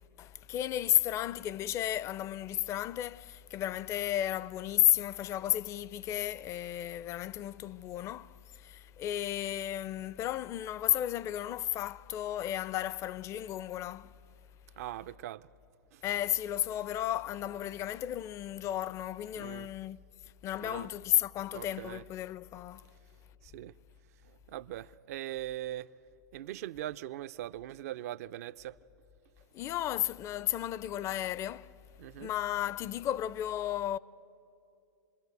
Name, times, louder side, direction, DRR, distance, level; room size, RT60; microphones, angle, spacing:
voice 1, 0.2-14.1 16.0-20.1 20.4-22.9 29.5-31.7 32.2-34.0, left 13 dB, 35° left, 0.5 m, -33 dB
voice 2, 14.8-15.5 15.9-16.0 19.3-19.7 20.6-20.9 21.5-22.0 23.4-23.7 24.2-25.9 26.3-28.8 32.0-32.3, right 13 dB, 65° right, 0.6 m, -41 dB
27.5 x 21.5 x 8.1 m
hypercardioid pair, 120°, 9 cm